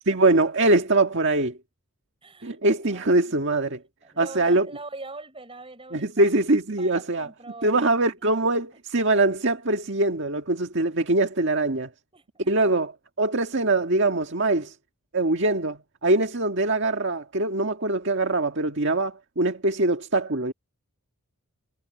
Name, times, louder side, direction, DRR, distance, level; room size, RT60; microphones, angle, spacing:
voice 1, 0.1-1.6 2.4-3.8 4.2-4.7 5.9-7.3 7.6-11.9 12.5-12.9 13.2-14.8 15.1-20.5, right 2 dB, 55° right, 1.8 m, -23 dB
voice 2, 2.2-3.4 4.0-6.3 6.8-8.6 12.1-12.7, right 3 dB, 25° right, 6.2 m, -43 dB
head